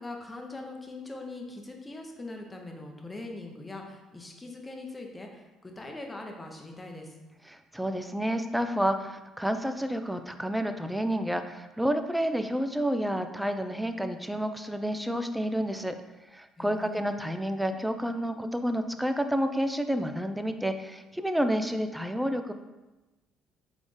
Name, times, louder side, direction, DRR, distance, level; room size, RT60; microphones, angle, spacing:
voice 1, 0.0-7.1 16.6-17.2, left 2 dB, 20° left, 2 dB, 0.8 m, -42 dB
voice 2, 7.5-16.0 16.3-22.5, equal, 5° right, 8 dB, 0.4 m, -30 dB
4.1 x 3.5 x 3.2 m, 1.1 s
supercardioid pair, 75°, 0 cm